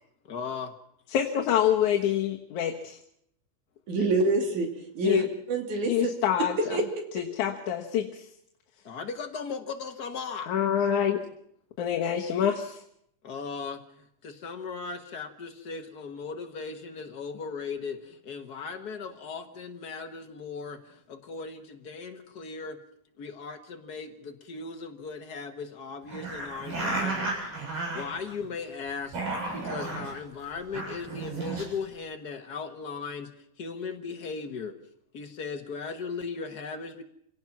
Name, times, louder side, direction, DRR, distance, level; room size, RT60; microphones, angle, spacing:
voice 1, 0.3-0.7 8.8-10.5 13.2-22.8 23.2-27.4 27.7-29.2 29.5-34.8 35.1-37.0, left 5 dB, 85° left, 5 dB, 0.8 m, -37 dB
voice 2, 1.1-3.0 5.0-5.3 5.9-6.8 7.2-8.1 10.5-11.2 11.8-12.8, left 9 dB, 70° left, 1 dB, 2.6 m, -26 dB
voice 3, 3.9-4.7 5.0-5.2 5.5-6.1 6.6-7.0, right 2 dB, 65° right, 4 dB, 4.1 m, -26 dB
sound 1, 26.1-28.5 28.9-30.1 30.6-31.6, right 3 dB, 85° right, 8.8 m, -33 dB
26.5 x 17.5 x 5.9 m, 0.72 s
omnidirectional pair, 3.7 m